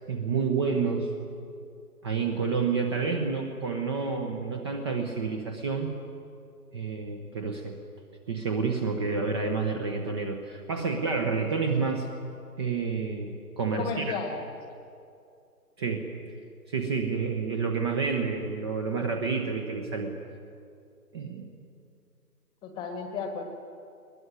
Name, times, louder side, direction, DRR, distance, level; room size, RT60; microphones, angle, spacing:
voice 1, 0.1-1.1 2.0-5.9 6.7-7.8 8.3-12.1 12.6-14.2 15.8-16.1 16.7-20.2 21.1-21.5, right 5 dB, 15° right, 4 dB, 1.0 m, -29 dB
voice 2, 13.8-14.4 22.6-23.4, left 5 dB, 10° left, 6 dB, 1.4 m, -33 dB
21.5 x 20.0 x 9.8 m, 2.5 s
figure-of-eight pair, 145°, 47 cm